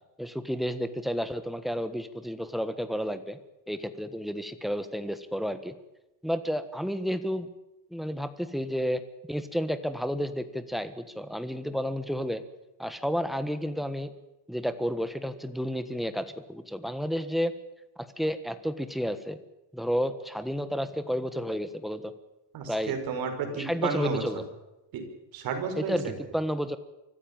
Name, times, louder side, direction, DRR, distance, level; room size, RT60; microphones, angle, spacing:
voice 1, 0.2-3.4 3.7-5.7 6.2-7.5 7.9-9.0 9.3-12.4 12.8-14.1 14.5-17.5 18.0-19.4 19.7-22.1 22.7-22.9 23.5-24.4 25.8-26.8, equal, ahead, 11 dB, 1.4 m, -31 dB
voice 2, 22.5-24.2 24.9-25.0 25.3-26.0, right 6 dB, 60° right, 5 dB, 5.8 m, -31 dB
24.5 x 15.0 x 9.0 m, 0.96 s
cardioid pair, 155°, 40 cm